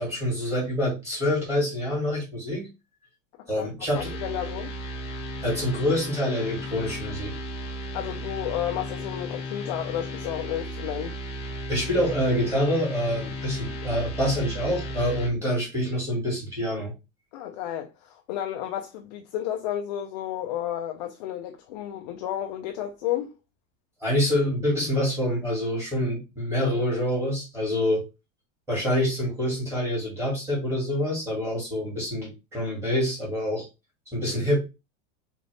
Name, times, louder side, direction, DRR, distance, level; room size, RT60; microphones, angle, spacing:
voice 1, 0.0-2.7 3.5-4.1 5.4-7.3 11.7-16.9 24.0-28.0 28.7-33.7 34.1-34.6, equal, 5° right, 2.3 m, -26 dB
voice 2, 3.4-4.7 7.9-11.2 17.3-23.3, left 11 dB, 35° left, 0.4 m, -32 dB
sound 1, 3.9-15.3, left 1 dB, 15° left, 0.8 m, -35 dB
4.0 x 3.9 x 3.4 m
supercardioid pair, 180°, 37 cm